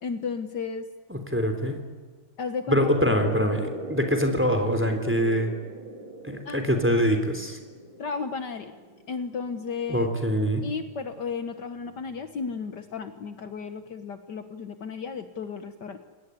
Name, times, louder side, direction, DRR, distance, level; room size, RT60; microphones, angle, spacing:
voice 1, 0.0-0.9 2.4-2.8 6.5-6.6 8.0-8.7 9.1-10.1 10.6-16.0, left 5 dB, 60° left, 9 dB, 1.8 m, -33 dB
voice 2, 1.1-1.8 2.7-5.5 6.2-7.6 9.9-10.7, equal, 5° right, 6 dB, 3.4 m, -24 dB
sound 1, 2.7-9.9, equal, 85° right, 6.2 m, -39 dB
28.0 x 18.0 x 9.8 m, 1.4 s
omnidirectional pair, 2.2 m